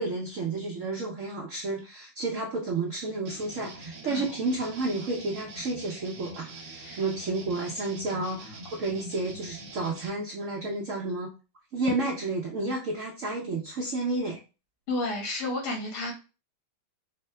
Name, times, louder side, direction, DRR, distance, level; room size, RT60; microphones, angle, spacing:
voice 1, 0.0-11.3 11.7-14.4, right 2 dB, 80° right, -2 dB, 0.7 m, -31 dB
sound 1, 3.3-10.1, right 2 dB, 60° right, 1.3 m, -44 dB
voice 2, 14.9-16.1, left 2 dB, 85° left, 1 dB, 2.0 m, -31 dB
4.4 x 2.1 x 3.2 m, 0.32 s
omnidirectional pair, 2.2 m